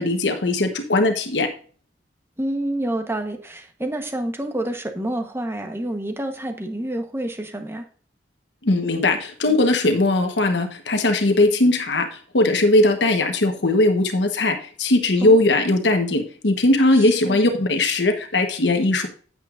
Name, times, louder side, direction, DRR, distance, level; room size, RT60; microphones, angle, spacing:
voice 1, 0.0-1.5 8.6-19.1, left 2 dB, 85° left, 5 dB, 1.1 m, -19 dB
voice 2, 2.4-7.9 15.2-15.4 16.9-17.4, right 1 dB, 15° right, 5 dB, 1.0 m, -28 dB
9.0 x 8.0 x 2.5 m, 0.42 s
head